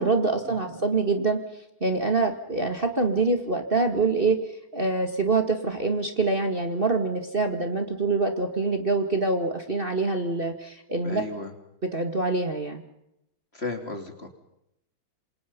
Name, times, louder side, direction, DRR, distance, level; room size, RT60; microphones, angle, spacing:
voice 1, 0.0-1.4 1.8-11.2 11.9-12.8, right 3 dB, 25° right, 5 dB, 2.2 m, -25 dB
voice 2, 11.0-11.5 13.5-14.4, left 3 dB, 30° left, 5 dB, 2.9 m, -34 dB
27.5 x 27.5 x 5.5 m, 0.81 s
omnidirectional pair, 2.3 m